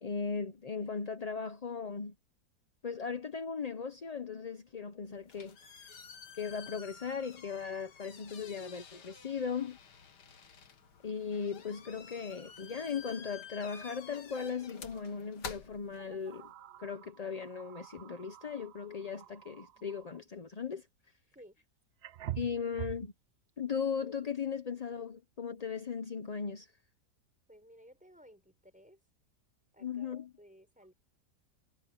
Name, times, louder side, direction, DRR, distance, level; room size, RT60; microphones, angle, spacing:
voice 1, 0.0-2.1 2.8-5.6 5.9-6.0 6.4-9.8 11.0-16.5 16.8-20.9 22.4-23.1 23.6-26.7 29.8-30.3, left 6 dB, 40° left, 0.5 m, -37 dB
sound 1, 5.0-16.5, left 6 dB, 90° left, 2.3 m, -51 dB
sound 2, 12.5-12.6 12.9-13.1 14.9-15.1 16.0-20.3 21.4-21.5 22.0-23.1, right 13 dB, 75° right, 0.5 m, -46 dB
voice 2, 27.5-29.0 29.7-30.9, equal, 5° right, 5.2 m, -57 dB
omnidirectional pair, 1.7 m